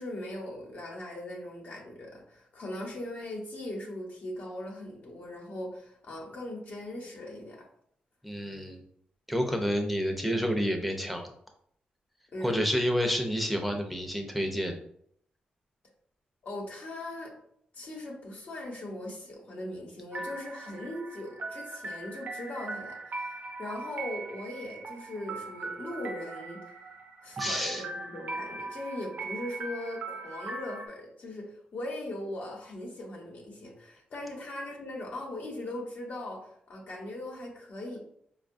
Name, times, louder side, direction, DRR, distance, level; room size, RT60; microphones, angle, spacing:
voice 1, 0.0-7.7 12.3-12.6 16.4-17.3 17.7-26.6 27.2-38.0, left 1 dB, 60° left, -1 dB, 1.0 m, -39 dB
voice 2, 8.2-8.8 9.3-11.3 12.4-14.8 27.4-27.8, equal, ahead, 4 dB, 0.6 m, -29 dB
sound 1, 20.1-30.9, right 3 dB, 65° right, 0.7 m, -40 dB
4.5 x 2.3 x 2.5 m, 0.68 s
cardioid pair, 95°, 3 cm